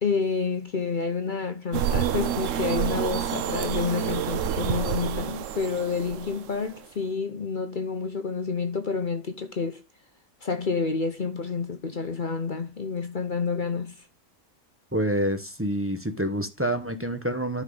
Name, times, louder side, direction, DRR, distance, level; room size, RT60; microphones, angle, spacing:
voice 1, 0.0-9.8 10.4-14.0, left 5 dB, 40° left, 0.9 m, -29 dB
sound 1, 1.7-6.8, right 9 dB, 65° right, 1.0 m, -28 dB
voice 2, 14.9-17.6, right 1 dB, 10° right, 0.7 m, -27 dB
11.0 x 5.6 x 3.9 m
omnidirectional pair, 1.6 m